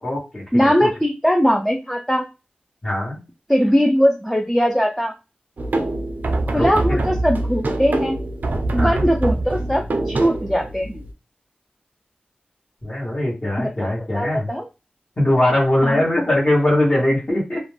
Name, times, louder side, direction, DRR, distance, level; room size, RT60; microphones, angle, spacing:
voice 1, 0.0-0.9 2.8-3.2 6.5-7.0 8.7-9.0 12.8-14.5 15.2-17.6, left 1 dB, 35° left, -5 dB, 1.1 m, -21 dB
voice 2, 0.5-2.2 3.5-5.1 6.5-8.2 8.7-11.0 13.6-14.6 15.8-16.0, equal, 5° left, 2 dB, 0.4 m, -20 dB
sound 1, 5.6-11.1, right 2 dB, 75° right, 0.4 m, -24 dB
2.4 x 2.1 x 3.2 m, 0.28 s
wide cardioid pair, 80°, 3 cm